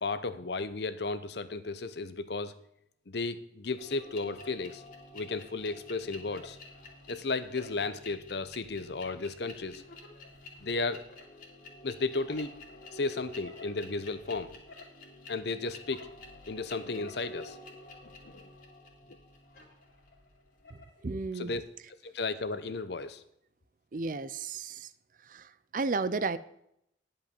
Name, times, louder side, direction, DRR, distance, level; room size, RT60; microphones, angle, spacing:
voice 1, 0.0-2.5 3.1-4.8 5.1-6.6 7.1-9.8 10.6-11.0 11.8-12.5 12.9-14.6 15.3-16.1 16.5-17.6 18.0-18.4 21.3-21.6 22.0-23.2, left 3 dB, 65° left, 12 dB, 0.8 m, -34 dB
sound 1, 3.8-21.0, left 2 dB, 50° left, 2.3 m, -50 dB
voice 2, 20.7-21.5 23.9-24.9 25.3-26.4, right 3 dB, 45° right, 14 dB, 0.5 m, -33 dB
10.5 x 5.5 x 7.0 m, 0.77 s
head